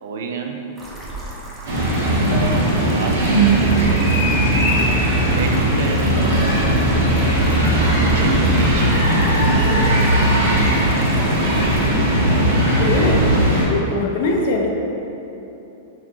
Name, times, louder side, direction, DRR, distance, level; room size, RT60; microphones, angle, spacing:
voice 1, 0.0-0.7 2.0-4.2 5.4-6.6 8.0-9.2, right 4 dB, 70° right, 3 dB, 0.4 m, -28 dB
sound 1, 0.8-11.9, right 1 dB, 15° right, 0.5 m, -36 dB
sound 2, 1.6-13.6, right 1 dB, 90° right, 1.3 m, -17 dB
voice 2, 12.6-13.3 13.7-14.7, left 2 dB, 60° left, 1 dB, 0.5 m, -22 dB
4.3 x 2.8 x 2.7 m, 3.0 s
supercardioid pair, 155°, 0 cm